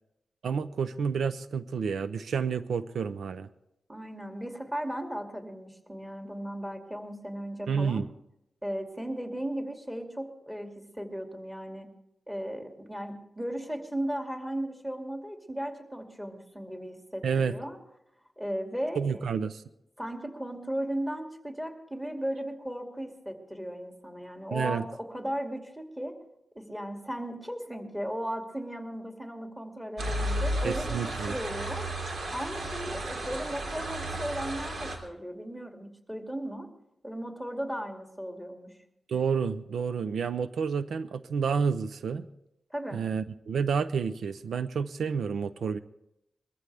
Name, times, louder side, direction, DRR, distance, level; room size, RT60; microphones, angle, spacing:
voice 1, 0.4-3.5 7.7-8.1 17.2-17.5 19.0-19.6 24.5-24.8 30.6-31.3 39.1-42.3 42.9-45.8, right 6 dB, 85° right, 13 dB, 0.6 m, -29 dB
voice 2, 3.9-8.0 8.6-11.9 12.3-17.8 18.4-19.3 20.0-26.2 26.5-31.9 32.3-36.7 37.0-38.7 42.7-43.0, equal, 10° right, 3 dB, 2.5 m, -36 dB
sound 1, 30.0-35.0, right 1 dB, 70° right, 3.1 m, -33 dB
22.0 x 14.5 x 3.5 m, 0.83 s
cardioid pair, 85°, 0 cm